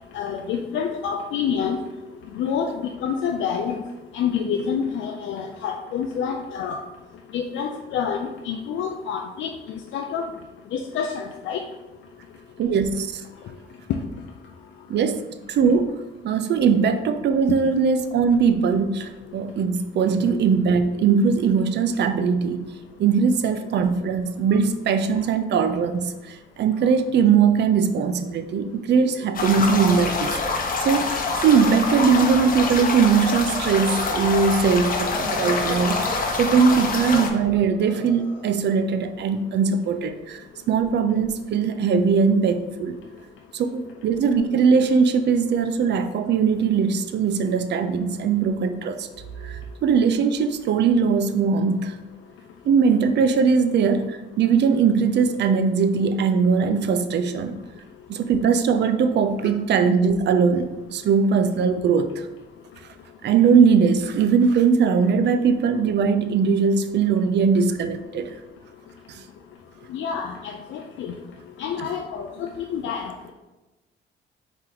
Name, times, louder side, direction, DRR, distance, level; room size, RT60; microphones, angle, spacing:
voice 1, 0.1-1.8 2.4-3.8 4.1-6.8 7.3-10.3 10.7-11.6 36.6-36.8 69.9-71.1 71.6-73.3, left 7 dB, 75° left, 2 dB, 0.4 m, -28 dB
voice 2, 12.6-13.2 14.9-16.0 16.2-22.6 23.0-30.6 30.8-31.1 31.4-43.0 43.5-49.1 49.4-52.0 52.7-57.6 58.1-62.1 63.2-68.3 69.1-69.2, right 6 dB, 60° right, 10 dB, 0.5 m, -20 dB
sound 1, 29.3-37.3, left 3 dB, 45° left, 0.7 m, -26 dB
sound 2, 35.1-38.7, left 1 dB, 10° left, 1.2 m, -34 dB
4.4 x 3.0 x 3.8 m, 1.1 s
cardioid pair, 90°, 20 cm